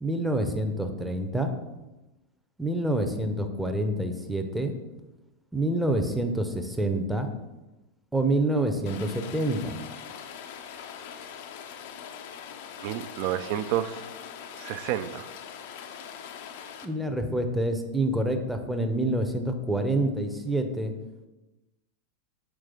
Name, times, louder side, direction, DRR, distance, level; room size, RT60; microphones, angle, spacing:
voice 1, 0.0-1.5 2.6-4.7 5.5-7.3 8.1-9.8 16.8-20.9, right 1 dB, 5° right, 5 dB, 0.6 m, -27 dB
Rain, 8.9-16.9, left 8 dB, 50° left, 0.5 m, -42 dB
voice 2, 12.8-14.0 14.6-15.3, right 12 dB, 45° right, 13 dB, 0.3 m, -30 dB
5.9 x 4.7 x 3.7 m, 1.0 s
figure-of-eight pair, 90°, 0 cm